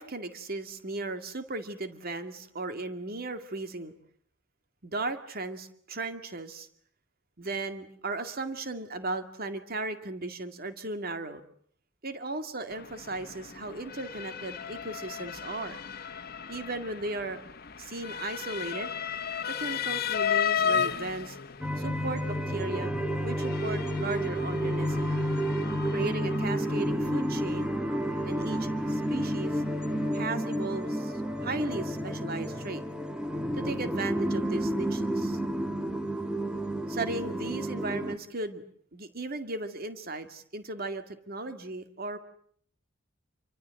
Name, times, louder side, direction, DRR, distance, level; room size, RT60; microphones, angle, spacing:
voice 1, 0.0-4.0 4.8-6.7 7.4-11.4 12.0-15.8 16.5-17.4 17.8-18.9 19.6-21.4 21.8-22.9 23.2-25.1 25.8-27.7 28.2-29.6 30.1-32.8 33.5-35.4 36.9-38.6 38.9-42.2, right 2 dB, 50° right, 8 dB, 2.2 m, -36 dB
Motor vehicle (road) / Siren, 12.7-30.1, left 7 dB, 55° left, 1.3 m, -35 dB
sound 1, 21.6-38.2, equal, 5° right, 1.9 m, -30 dB
28.5 x 24.5 x 7.7 m, 0.63 s
head